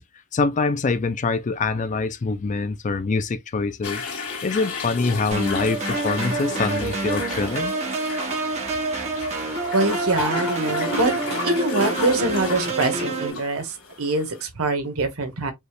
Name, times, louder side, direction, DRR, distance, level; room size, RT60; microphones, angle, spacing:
voice 1, 0.3-4.0 4.4-7.7, left 4 dB, 35° left, 0.4 m, -24 dB
sound 1, 3.8-14.4, left 4 dB, 70° left, 2.4 m, -32 dB
sound 2, 5.3-13.3, right 3 dB, 30° right, 1.5 m, -28 dB
voice 2, 9.7-11.1 11.4-15.5, right 2 dB, 75° right, 1.4 m, -24 dB
5.3 x 2.4 x 3.2 m
head